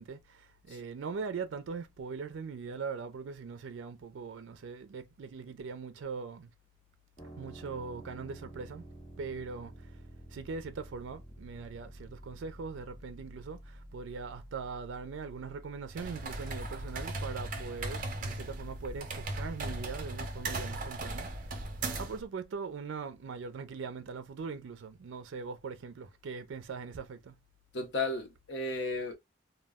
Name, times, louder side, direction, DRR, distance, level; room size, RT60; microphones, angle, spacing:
voice 1, 0.0-6.5 7.4-8.9 9.2-10.0 10.3-21.4 22.0-27.4, right 5 dB, 85° right, 0.4 m, -41 dB
sound 1, 7.2-18.8, right 1 dB, 30° left, 1.1 m, -51 dB
sound 2, 15.9-22.2, right 2 dB, 45° right, 0.6 m, -38 dB
voice 2, 27.7-29.1, left 2 dB, 70° left, 0.7 m, -34 dB
2.2 x 2.1 x 3.4 m
head